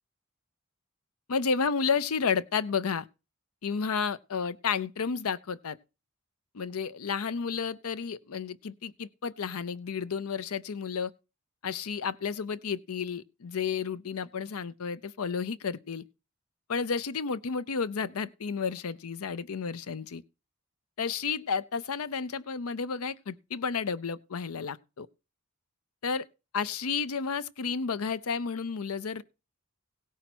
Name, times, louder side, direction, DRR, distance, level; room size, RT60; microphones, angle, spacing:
voice 1, 1.3-3.1 3.6-5.8 6.5-11.1 11.6-16.0 16.7-20.2 21.0-25.1 26.0-26.3 26.5-29.2, left 5 dB, 85° left, 0.6 m, -31 dB
16.5 x 5.6 x 6.1 m
head